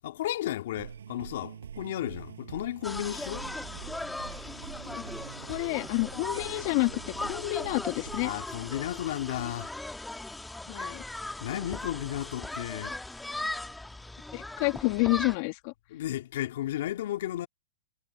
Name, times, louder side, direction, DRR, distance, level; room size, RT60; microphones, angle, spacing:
voice 1, 0.0-3.5 8.2-9.7 11.4-13.0 15.9-17.5, left 13 dB, 65° left, 2.1 m, -34 dB
sound 1, 0.7-8.4, right 8 dB, 85° right, 6.7 m, -45 dB
sound 2, 2.8-15.4, left 2 dB, 5° left, 1.7 m, -38 dB
voice 2, 5.5-8.3 10.7-11.0 14.3-15.7, left 27 dB, 45° left, 2.3 m, -29 dB
hypercardioid pair, 135°, 0 cm